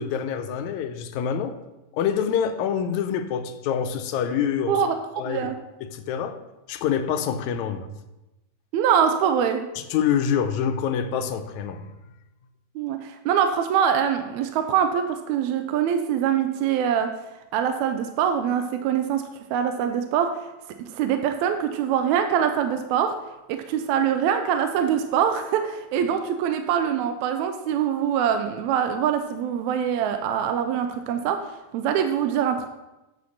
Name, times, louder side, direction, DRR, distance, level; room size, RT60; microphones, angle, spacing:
voice 1, 0.0-1.6 1.9-4.8 5.2-5.5 5.9-6.4 6.7-7.9 9.8-11.9, left 8 dB, 80° left, 8 dB, 1.9 m, -26 dB
voice 2, 4.7-5.6 8.7-9.6 12.8-17.1 17.5-19.2 19.5-20.5 20.8-23.1 23.5-32.7, right 8 dB, 80° right, 7 dB, 1.8 m, -24 dB
8.5 x 4.2 x 6.3 m, 1.0 s
omnidirectional pair, 3.6 m